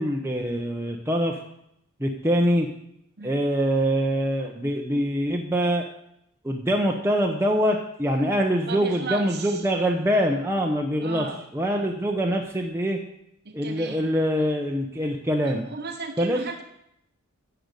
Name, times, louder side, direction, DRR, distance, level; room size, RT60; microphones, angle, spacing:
voice 1, 0.0-1.4 2.0-2.7 3.2-5.9 6.4-11.3 11.5-13.0 13.5-15.6 16.2-16.4, equal, 10° right, 0 dB, 0.9 m, -24 dB
voice 2, 8.7-9.7 11.0-11.4 13.4-14.1 15.4-16.6, right 4 dB, 50° right, 3 dB, 1.0 m, -35 dB
10.0 x 6.8 x 8.2 m, 0.77 s
head